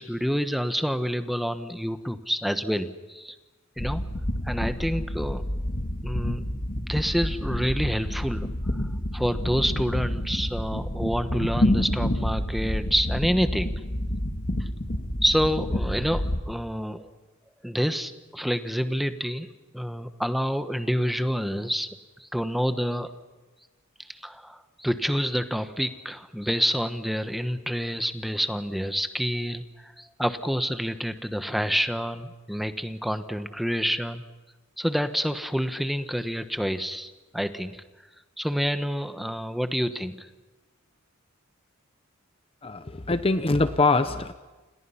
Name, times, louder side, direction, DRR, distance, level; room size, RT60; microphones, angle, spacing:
voice 1, 0.0-3.3 3.8-4.0 4.4-5.4 6.0-6.4 6.9-8.5 9.1-13.7 15.2-17.1 17.6-19.5 19.7-21.9 22.2-23.1 24.1-34.2 34.8-37.8 38.4-40.3, equal, ahead, 9 dB, 1.2 m, -28 dB
sound 1, 3.8-16.4, left 1 dB, 40° left, 1.9 m, -28 dB
voice 2, 42.6-44.3, left 3 dB, 25° left, 11 dB, 0.8 m, -23 dB
30.0 x 28.0 x 5.8 m, 1.2 s
head